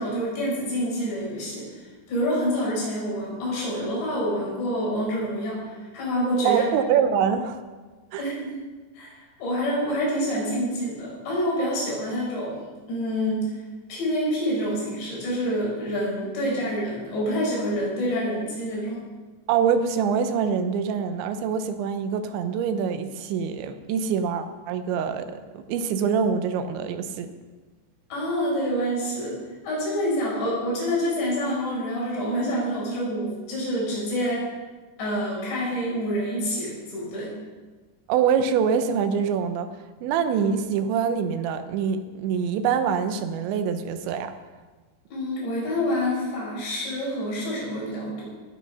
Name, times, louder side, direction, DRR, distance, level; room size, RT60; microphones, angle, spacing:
voice 1, 0.0-1.8 2.1-6.6 8.2-8.6 9.0-12.5 12.9-13.5 13.9-19.0 28.1-29.4 29.6-34.4 35.0-37.4 45.1-48.3, equal, 70° left, -5 dB, 7.2 m, -27 dB
voice 2, 6.4-7.6 8.1-8.2 19.5-27.3 38.1-39.7 40.0-44.3, right 7 dB, 85° right, 9 dB, 3.2 m, -25 dB
18.0 x 8.6 x 5.6 m, 1.3 s
omnidirectional pair, 5.2 m